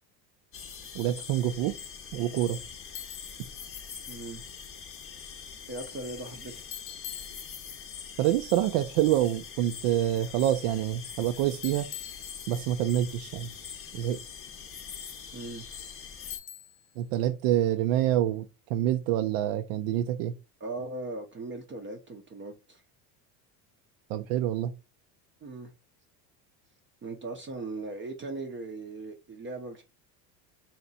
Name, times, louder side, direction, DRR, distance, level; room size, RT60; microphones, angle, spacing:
sound 1, 0.5-16.4, left 6 dB, 30° left, 0.7 m, -43 dB
voice 1, 0.9-1.7 2.1-2.6 8.2-11.9 12.5-13.5 13.9-14.2 17.0-20.3 24.1-24.7, right 12 dB, 75° right, 0.5 m, -27 dB
Bicycle, 3.0-3.5 6.7-7.9 11.6-12.9 16.3-17.0, left 11 dB, 70° left, 0.7 m, -43 dB
voice 2, 4.1-4.4 5.7-6.6 15.3-15.7 20.6-22.8 25.4-25.7 27.0-29.8, right 2 dB, 25° right, 0.6 m, -39 dB
3.2 x 2.9 x 4.0 m
supercardioid pair, 120°, 46 cm